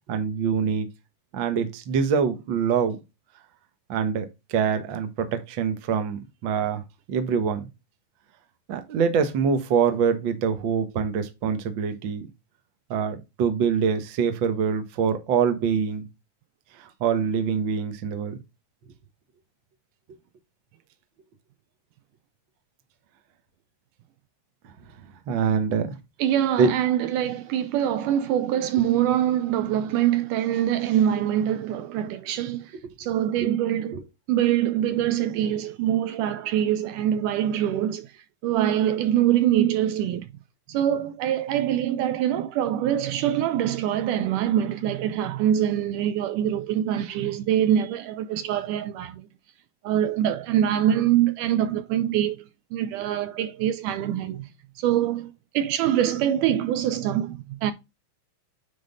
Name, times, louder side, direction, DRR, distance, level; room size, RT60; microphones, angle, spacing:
voice 1, 0.1-0.9 1.3-3.0 3.9-6.8 7.1-7.7 8.7-12.3 12.9-16.0 16.8-18.4 25.3-25.9 26.6-26.7 33.9-34.0, right 6 dB, 55° right, 1.4 m, -24 dB
voice 2, 26.2-32.7 33.0-34.0 34.3-40.3 40.7-49.3 49.8-52.4 52.7-54.5 54.8-57.7, right 11 dB, 80° right, 2.0 m, -24 dB
9.3 x 4.1 x 3.9 m
omnidirectional pair, 4.0 m